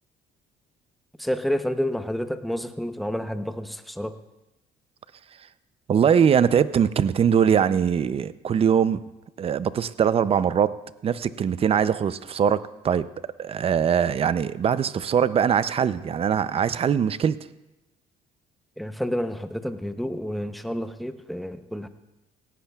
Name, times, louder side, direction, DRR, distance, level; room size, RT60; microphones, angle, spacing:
voice 1, 1.2-4.2 18.8-21.9, equal, ahead, 8 dB, 0.8 m, -29 dB
voice 2, 5.9-9.0 9.4-13.1 13.4-17.4, right 8 dB, 35° right, 15 dB, 0.5 m, -22 dB
18.0 x 16.0 x 2.4 m, 0.98 s
cardioid pair, 110°, 17 cm